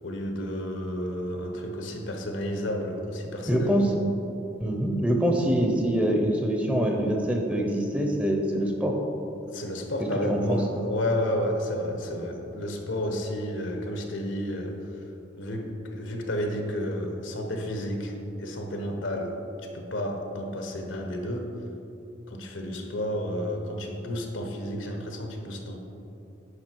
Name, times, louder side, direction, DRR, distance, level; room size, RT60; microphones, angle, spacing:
voice 1, 0.0-3.8 9.5-14.8 15.3-21.6 22.3-25.8, left 1 dB, 75° left, 3 dB, 1.1 m, -31 dB
voice 2, 3.5-4.0 4.6-8.9 10.3-10.6, right 1 dB, 5° right, 1 dB, 0.7 m, -24 dB
9.8 x 5.6 x 4.6 m, 2.9 s
head